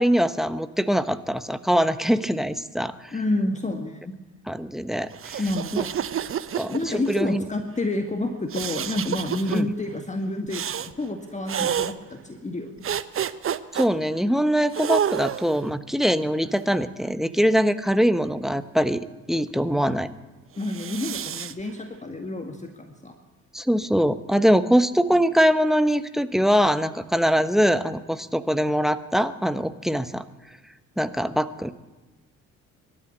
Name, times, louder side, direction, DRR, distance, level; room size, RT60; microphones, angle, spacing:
voice 1, 0.0-3.1 4.5-5.1 5.7-5.8 6.5-6.7 7.1-7.5 9.5-9.7 13.7-19.0 19.3-20.1 23.5-30.2 31.0-31.7, equal, ahead, 13 dB, 1.1 m, -22 dB
voice 2, 3.1-4.2 5.4-5.9 6.7-12.8 20.6-23.2, left 2 dB, 15° left, 5 dB, 1.8 m, -29 dB
sound 1, 5.1-7.2 8.5-9.6 10.5-10.9 11.5-11.9 12.8-13.9 14.7-15.6 16.4-17.5 20.6-21.5, right 9 dB, 30° right, 0.9 m, -29 dB
24.0 x 12.5 x 8.6 m, 1.2 s
figure-of-eight pair, 50°, 40 cm